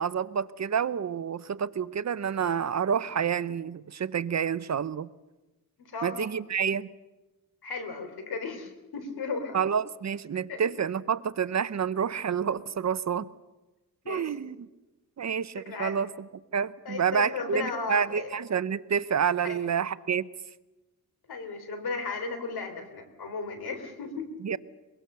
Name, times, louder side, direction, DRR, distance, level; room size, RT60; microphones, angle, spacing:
voice 1, 0.0-5.1 6.0-6.9 9.5-13.3 14.1-14.7 15.2-16.1 16.5-20.3 24.4-24.6, right 7 dB, 45° right, 16 dB, 0.7 m, -28 dB
voice 2, 5.8-6.3 7.6-9.6 10.5-10.7 14.0-14.3 15.2-15.3 15.6-16.0 16.9-18.3 19.4-19.6 21.3-24.3, left 4 dB, 80° left, 7 dB, 3.8 m, -35 dB
23.0 x 22.0 x 6.8 m, 1.1 s
wide cardioid pair, 120°, 37 cm